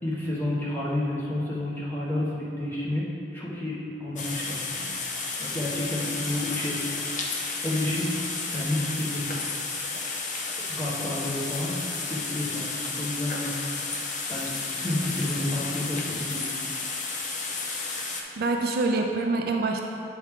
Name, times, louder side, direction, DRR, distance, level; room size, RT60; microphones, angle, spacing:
voice 1, 0.0-3.1 3.3-4.6 5.4-7.0 7.6-8.1 8.5-9.4 10.7-13.5 14.3-16.5, left 1 dB, 10° left, -8 dB, 1.4 m, -30 dB
sound 1, 4.2-18.2, left 4 dB, 45° left, 0.6 m, -32 dB
voice 2, 18.4-19.8, right 3 dB, 55° right, 3 dB, 0.4 m, -26 dB
8.4 x 4.6 x 3.7 m, 2.7 s
head